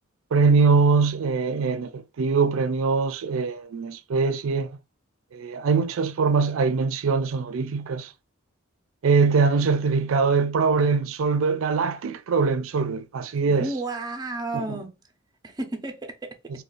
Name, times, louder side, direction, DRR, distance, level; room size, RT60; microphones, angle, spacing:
voice 1, 0.3-4.8 5.3-8.1 9.0-13.7 14.5-14.8, right 4 dB, 85° right, 0.4 m, -22 dB
voice 2, 13.4-14.9 15.4-16.3, right 2 dB, 20° right, 0.5 m, -32 dB
2.4 x 2.3 x 3.7 m
head